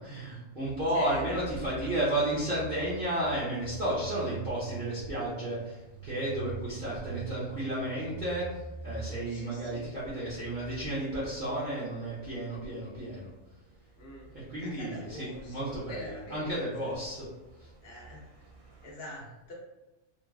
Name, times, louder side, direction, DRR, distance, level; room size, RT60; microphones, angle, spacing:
voice 1, 0.0-13.3 14.3-17.3 17.6-17.7, right 1 dB, 45° right, -10 dB, 0.9 m, -33 dB
sound 1, 0.6-18.9, right 4 dB, 65° right, 0.3 m, -46 dB
voice 2, 0.9-1.2 1.7-1.8 9.3-9.9 14.0-14.3 14.6-17.1 17.8-18.3 18.8-19.5, equal, 60° left, -3 dB, 0.8 m, -45 dB
3.1 x 2.3 x 2.3 m, 1.1 s
omnidirectional pair, 1.2 m